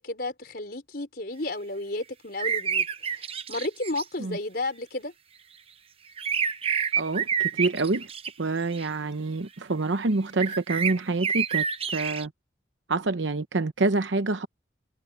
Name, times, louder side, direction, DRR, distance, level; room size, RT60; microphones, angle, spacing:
voice 1, 0.0-3.2 3.5-5.1, left 2 dB, 55° left, 4.8 m, -32 dB
sound 1, 2.4-4.0 6.2-8.3 8.7-8.9 10.4-12.3, right 7 dB, 30° right, 0.8 m, -28 dB
voice 2, 7.0-8.1 8.4-11.6 11.9-12.3 12.9-14.5, right 3 dB, 80° right, 0.8 m, -27 dB
head